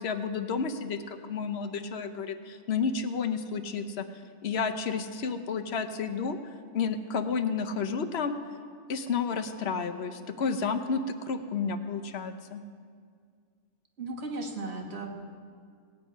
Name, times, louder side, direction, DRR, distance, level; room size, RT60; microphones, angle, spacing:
voice 1, 0.0-4.0 4.4-6.4 6.7-8.4 8.9-12.6, left 5 dB, 60° left, 7 dB, 1.0 m, -31 dB
voice 2, 14.0-15.1, right 2 dB, 60° right, 2 dB, 1.6 m, -36 dB
18.0 x 9.3 x 5.0 m, 2.1 s
omnidirectional pair, 1.3 m